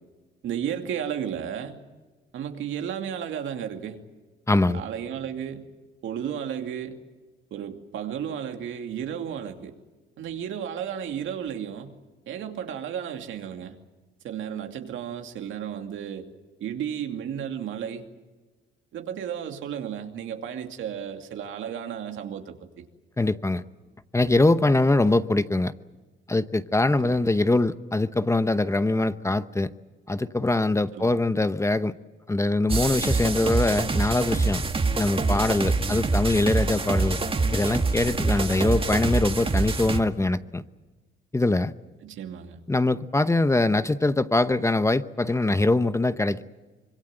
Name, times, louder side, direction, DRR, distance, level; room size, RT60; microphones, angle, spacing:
voice 1, 0.4-1.8 2.3-4.0 4.7-5.7 6.0-7.0 7.5-9.7 10.2-11.9 12.3-13.8 14.2-16.3 16.6-18.0 18.9-22.8 27.0-27.2 30.9-31.2 35.9-36.1 42.0-42.6, right 9 dB, 80° right, 5 dB, 2.7 m, -33 dB
voice 2, 4.5-4.8 23.2-23.6 24.1-25.7 26.3-29.7 30.1-31.9 32.3-34.6 35.0-37.2 37.5-40.6 41.3-41.7 42.7-46.4, left 2 dB, 15° left, 12 dB, 0.9 m, -23 dB
sound 1, 32.7-40.0, right 3 dB, 25° right, 2.1 m, -25 dB
25.5 x 22.5 x 7.9 m, 1.3 s
cardioid pair, 90°, 20 cm